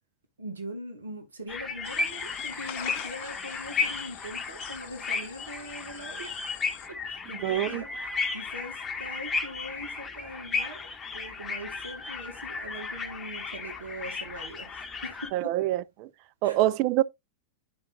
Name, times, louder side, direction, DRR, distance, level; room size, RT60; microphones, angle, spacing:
voice 1, 0.4-6.4 7.1-10.8 11.1-15.5 16.4-16.6, equal, 75° right, 1.7 m, -41 dB
sound 1, 1.5-15.3, left 4 dB, 20° left, 1.1 m, -34 dB
sound 2, 1.8-6.9, left 12 dB, 50° left, 0.6 m, -45 dB
voice 2, 7.4-7.8 15.3-16.1 16.4-17.0, right 15 dB, 45° right, 0.4 m, -25 dB
10.5 x 5.5 x 2.6 m
figure-of-eight pair, 90°, 0 cm